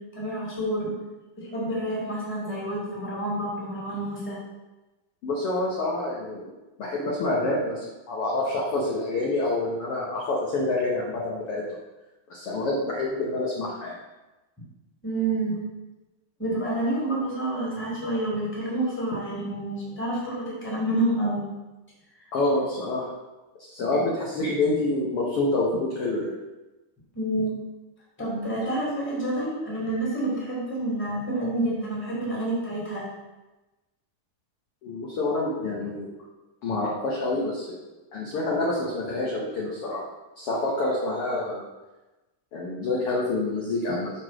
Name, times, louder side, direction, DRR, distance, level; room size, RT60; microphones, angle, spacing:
voice 1, 0.1-0.9 1.4-4.4 15.0-15.6 16.4-21.4 23.9-24.0 27.1-27.6 28.2-33.1, right 1 dB, 5° left, -5 dB, 1.7 m, -28 dB
voice 2, 5.2-6.5 6.8-11.6 12.3-14.0 22.3-23.1 23.6-26.3 34.8-36.1 36.6-37.8 38.1-40.0 40.4-41.6 42.5-44.1, left 2 dB, 65° left, -4 dB, 1.5 m, -27 dB
6.6 x 4.8 x 6.0 m, 1.1 s
omnidirectional pair, 4.0 m